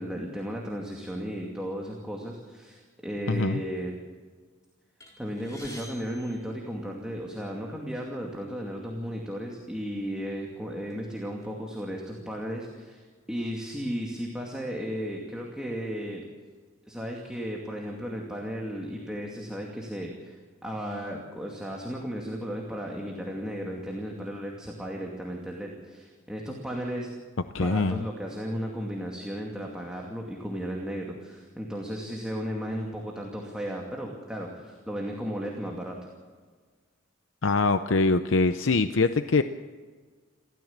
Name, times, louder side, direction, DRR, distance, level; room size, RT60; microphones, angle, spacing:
voice 1, 0.0-4.0 5.2-16.2 16.8-27.1 27.6-36.1, equal, 5° right, -1 dB, 2.4 m, -35 dB
voice 2, 3.3-3.6 27.5-28.0 37.4-39.4, left 3 dB, 70° left, 10 dB, 0.7 m, -23 dB
sound 1, 5.0-7.3 8.2-8.3 8.6-8.8 9.6-9.8 10.3-11.5, left 1 dB, 15° left, 5.1 m, -49 dB
29.0 x 14.0 x 7.4 m, 1.5 s
head